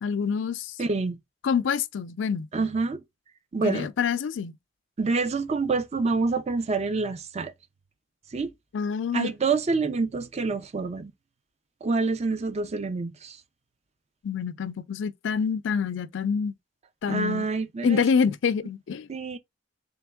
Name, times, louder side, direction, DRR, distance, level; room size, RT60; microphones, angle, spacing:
voice 1, 0.0-0.8 1.4-2.5 3.6-4.6 8.7-9.3 14.2-16.5 17.0-17.5 17.8-19.1, left 6 dB, 70° left, 0.4 m, -26 dB
voice 2, 0.8-1.2 2.5-3.0 3.5-3.9 5.0-7.5 8.3-8.5 9.1-11.1 11.8-13.4 17.1-18.0 19.1-19.4, right 4 dB, 35° right, 0.5 m, -27 dB
3.5 x 3.0 x 3.4 m
head